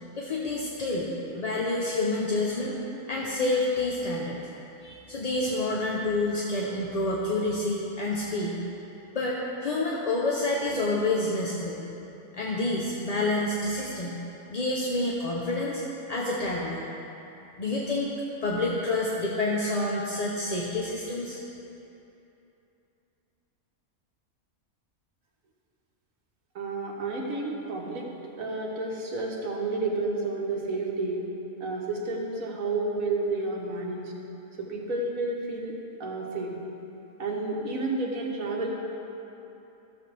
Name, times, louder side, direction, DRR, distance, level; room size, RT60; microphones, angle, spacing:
voice 1, 0.2-2.8 3.1-4.4 4.8-8.6 9.1-11.8 12.3-14.2 14.5-16.9 17.6-18.1 18.4-21.4, left 2 dB, 40° left, -4 dB, 0.6 m, -28 dB
voice 2, 26.6-28.1 28.4-31.3 31.6-34.1 34.6-35.8 36.0-36.5 37.2-38.7, right 3 dB, 75° right, -1 dB, 1.6 m, -30 dB
13.5 x 7.0 x 3.3 m, 2.9 s
omnidirectional pair, 1.5 m